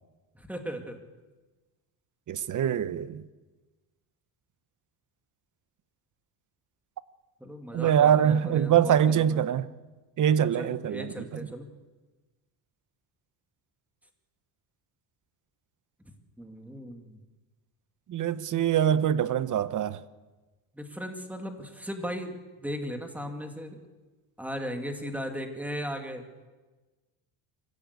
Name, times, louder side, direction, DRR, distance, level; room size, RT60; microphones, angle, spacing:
voice 1, 0.3-1.0 7.4-9.4 10.6-11.7 16.4-17.2 20.7-23.8 24.4-26.2, equal, 5° right, 2.3 m, -37 dB
voice 2, 2.3-3.2 7.7-9.7 10.2-11.5 18.1-20.0, right 9 dB, 45° right, 0.9 m, -24 dB
24.5 x 16.0 x 8.2 m
cardioid pair, 140°, 43 cm